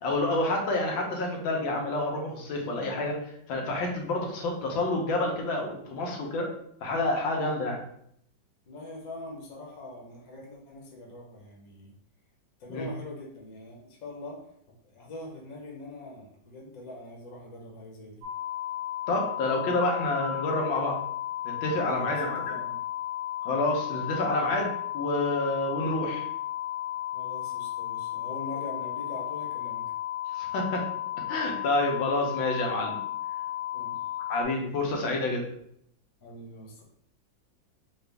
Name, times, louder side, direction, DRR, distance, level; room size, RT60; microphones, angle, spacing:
voice 1, 0.0-3.2 3.5-6.5 6.8-7.8 12.7-12.9 19.1-21.0 21.4-22.4 23.4-26.3 30.3-30.9 31.3-32.9 34.3-35.4, left 2 dB, 80° left, 0 dB, 1.6 m, -28 dB
voice 2, 8.7-11.9 12.6-14.4 14.8-18.2 21.9-22.8 27.1-29.8 33.7-34.0 36.2-36.8, left 2 dB, 55° left, -2 dB, 1.2 m, -43 dB
sound 1, 18.2-34.4, left 13 dB, 55° right, 0.9 m, -34 dB
3.9 x 2.4 x 3.3 m, 0.69 s
omnidirectional pair, 2.1 m